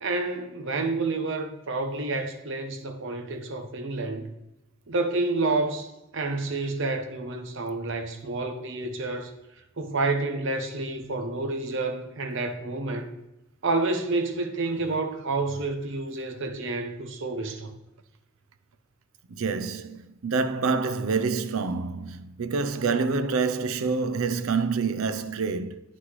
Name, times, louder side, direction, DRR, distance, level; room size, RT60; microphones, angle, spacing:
voice 1, 0.0-4.3 4.9-9.3 9.8-13.1 13.6-17.7, right 3 dB, 65° right, 1.0 m, -29 dB
voice 2, 19.3-25.8, right 4 dB, 90° right, 0.5 m, -27 dB
9.3 x 6.1 x 3.1 m
head